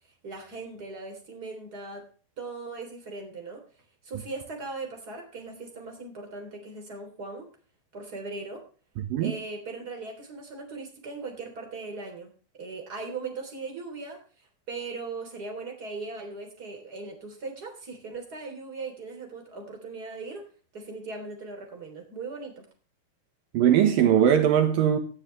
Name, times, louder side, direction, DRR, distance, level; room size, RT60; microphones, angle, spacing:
voice 1, 0.2-2.0 2.4-3.6 4.0-7.5 7.9-8.6 9.2-14.2 14.7-20.4 20.7-22.7, right 3 dB, 25° right, 3.6 m, -39 dB
voice 2, 9.0-9.3 23.5-25.0, right 9 dB, 75° right, 2.8 m, -20 dB
17.5 x 9.8 x 3.3 m
omnidirectional pair, 4.3 m